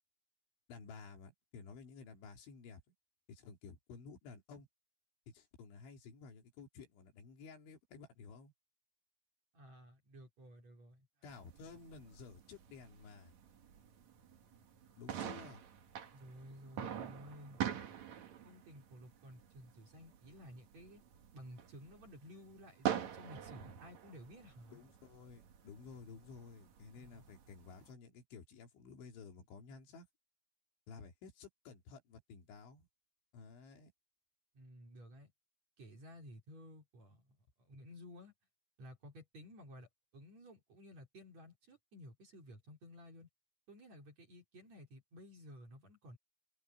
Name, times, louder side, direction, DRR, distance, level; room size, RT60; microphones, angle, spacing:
voice 1, 0.7-2.8 3.3-4.7 5.3-8.5 11.2-13.3 15.0-15.6 24.7-30.1 30.9-32.9 33.3-33.9, left 5 dB, 70° left, 5.3 m, -53 dB
voice 2, 9.5-11.1 16.1-17.6 18.4-21.0 21.3-24.8 27.0-27.2 34.5-35.3 35.8-38.3 38.8-43.3 43.7-46.2, equal, 35° right, 4.9 m, -55 dB
sound 1, 11.3-27.9, right 10 dB, 55° right, 2.1 m, -46 dB
omnidirectional pair, 5.7 m